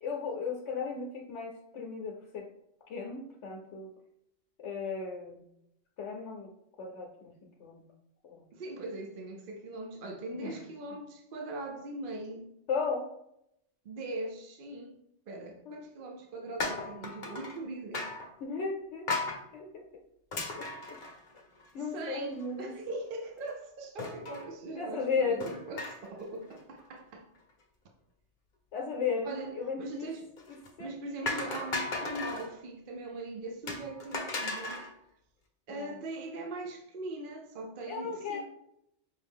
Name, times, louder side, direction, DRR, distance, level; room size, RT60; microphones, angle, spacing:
voice 1, 0.0-2.5 2.9-3.9 4.6-5.5 6.0-6.5 6.8-7.8 8.3-8.5 10.4-10.6 12.7-13.0 15.7-15.8 18.4-19.1 19.5-19.8 20.5-21.0 21.7-22.7 24.8-25.5 28.7-30.1 30.8-30.9 31.2-31.5 35.7-36.0 37.8-38.4, left 5 dB, 75° left, 0.9 m, -35 dB
voice 2, 8.5-12.5 13.8-15.0 15.3-18.1 21.9-27.3 29.2-30.2 30.8-34.8 35.7-38.4, right 2 dB, 55° right, 0.7 m, -41 dB
sound 1, 16.6-17.6 17.9-18.3 19.1-19.4 20.3-21.7 22.0-22.1 22.4-22.5 24.0-24.5 25.4-26.2 26.5-26.8 30.4-30.7 31.3-32.5 33.7-34.9, left 3 dB, 50° left, 0.7 m, -36 dB
5.6 x 2.4 x 3.5 m
omnidirectional pair, 1.2 m